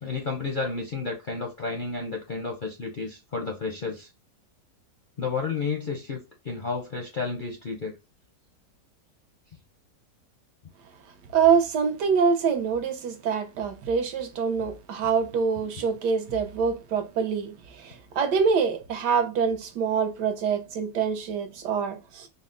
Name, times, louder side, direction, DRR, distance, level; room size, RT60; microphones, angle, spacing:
voice 1, 0.0-4.1 5.2-6.2 6.4-7.9, left 4 dB, 55° left, 0.5 m, -31 dB
voice 2, 11.3-22.3, right 6 dB, 80° right, 1.4 m, -25 dB
4.0 x 2.1 x 3.7 m
omnidirectional pair, 1.8 m